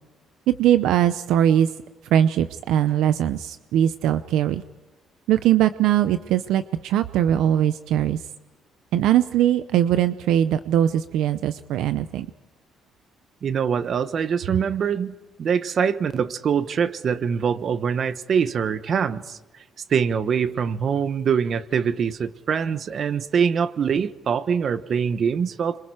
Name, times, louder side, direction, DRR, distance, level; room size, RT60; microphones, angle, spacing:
voice 1, 0.5-1.7 2.1-4.6 5.3-8.2 8.9-12.3, right 11 dB, 85° right, 11 dB, 0.6 m, -21 dB
voice 2, 13.4-19.4 19.9-25.8, right 7 dB, 50° right, 12 dB, 1.1 m, -24 dB
26.5 x 25.0 x 4.9 m, 1.3 s
cardioid pair, 110°, 0 cm